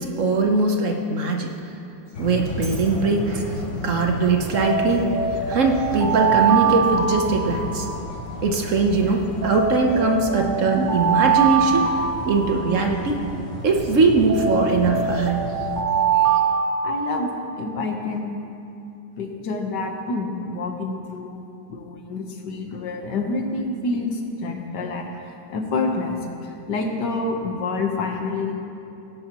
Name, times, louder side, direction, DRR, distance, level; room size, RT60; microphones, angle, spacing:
voice 1, 0.0-1.5 2.2-3.5 3.8-5.2 5.5-7.9 8.4-11.8 12.2-13.2 13.6-15.4, right 3 dB, 55° right, 2 dB, 1.1 m, -21 dB
sound 1, 2.1-15.8, left 2 dB, 50° left, 1.2 m, -34 dB
Alarm, 2.5-2.8 4.5-8.3 9.4-13.2 14.3-17.5, right 6 dB, 90° right, 2.1 m, -23 dB
voice 2, 16.8-17.3 17.6-18.4 19.2-21.4 21.7-25.1 25.5-26.2 26.4-28.5, left 3 dB, 90° left, 3 dB, 1.8 m, -27 dB
17.5 x 11.0 x 3.0 m, 2.6 s
omnidirectional pair, 1.8 m